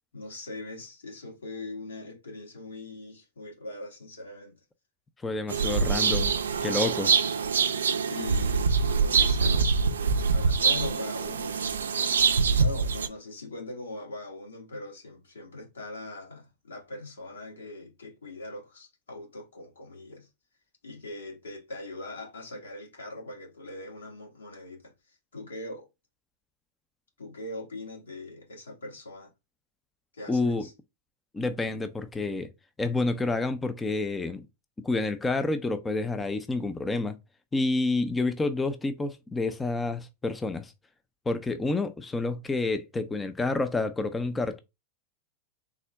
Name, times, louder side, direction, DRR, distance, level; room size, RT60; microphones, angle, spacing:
voice 1, 0.1-4.6 8.0-9.8 10.3-11.6 12.6-20.3 20.8-25.9 27.2-29.3 30.1-30.7, left 2 dB, 85° left, 1.5 m, -41 dB
voice 2, 5.2-6.3 6.6-7.1 30.3-30.7 31.3-32.5 32.8-34.5 34.8-37.2 37.5-40.7 41.3-44.6, left 3 dB, 15° left, 0.4 m, -29 dB
sound 1, 5.5-13.1, right 5 dB, 85° right, 0.4 m, -24 dB
3.6 x 2.1 x 3.4 m
hypercardioid pair, 100°, 0 cm